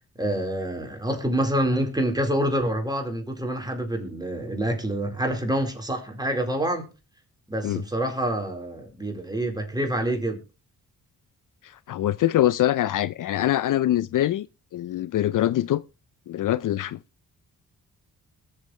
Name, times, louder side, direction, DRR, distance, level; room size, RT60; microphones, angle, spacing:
voice 1, 0.2-6.9 7.5-10.4, right 1 dB, 10° right, 4.1 m, -27 dB
voice 2, 11.6-14.5 14.7-15.8 16.3-17.0, left 13 dB, 60° left, 0.5 m, -24 dB
21.5 x 7.3 x 3.2 m
cardioid pair, 60°, 36 cm